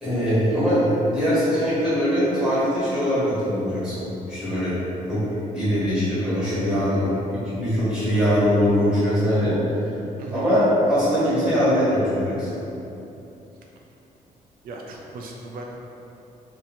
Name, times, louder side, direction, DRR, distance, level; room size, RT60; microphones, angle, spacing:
voice 1, 0.0-4.7 5.1-5.2 5.5-9.5 10.3-12.5, equal, 5° right, -13 dB, 1.3 m, -22 dB
voice 2, 14.6-15.6, right 3 dB, 85° right, 0 dB, 0.4 m, -37 dB
2.8 x 2.6 x 4.1 m, 3.0 s
cardioid pair, 155°, 14 cm